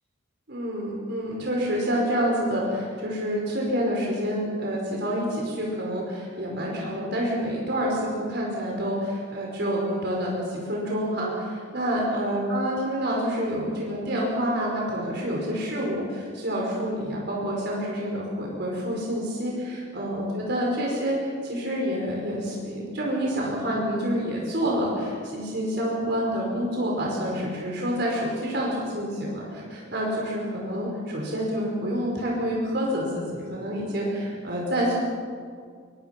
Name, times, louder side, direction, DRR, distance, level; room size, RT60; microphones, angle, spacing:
voice 1, 0.5-35.0, equal, 55° right, -2 dB, 5.1 m, -28 dB
25.0 x 24.0 x 6.0 m, 2.1 s
head